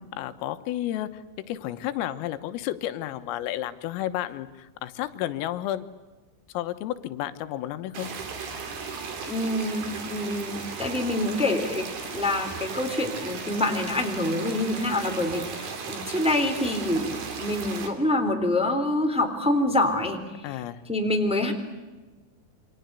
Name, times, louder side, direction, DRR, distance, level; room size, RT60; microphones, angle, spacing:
voice 1, 0.1-5.9 6.5-8.1 20.4-20.8, left 13 dB, 90° left, 10 dB, 3.8 m, -32 dB
sound 1, 7.9-17.9, right 5 dB, 55° right, 4.6 m, -36 dB
voice 2, 9.3-20.5 20.9-21.5, left 1 dB, ahead, 3 dB, 2.3 m, -26 dB
28.0 x 25.0 x 8.2 m, 1.2 s
omnidirectional pair, 5.9 m